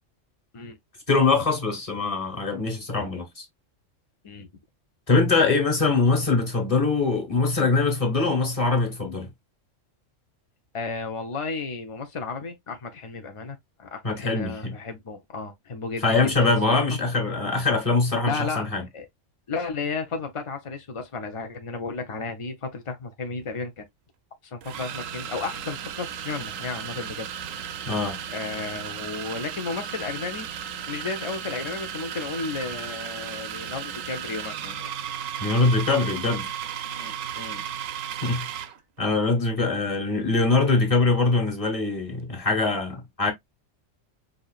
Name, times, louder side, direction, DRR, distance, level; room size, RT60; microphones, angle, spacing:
voice 1, 1.1-3.4 5.1-9.3 14.0-14.7 16.0-18.8 27.9-28.2 35.4-36.5 38.2-38.5 39.0-43.3, left 3 dB, 30° left, 1.4 m, -23 dB
voice 2, 10.7-17.0 18.3-18.7 18.9-19.1 19.5-23.8 24.4-27.3 28.3-30.5 30.9-34.9 36.9-37.6, left 4 dB, 50° left, 0.3 m, -33 dB
sound 1, 23.3-23.5 24.6-38.8, right 9 dB, 85° right, 1.0 m, -35 dB
5.0 x 2.7 x 2.3 m
omnidirectional pair, 1.3 m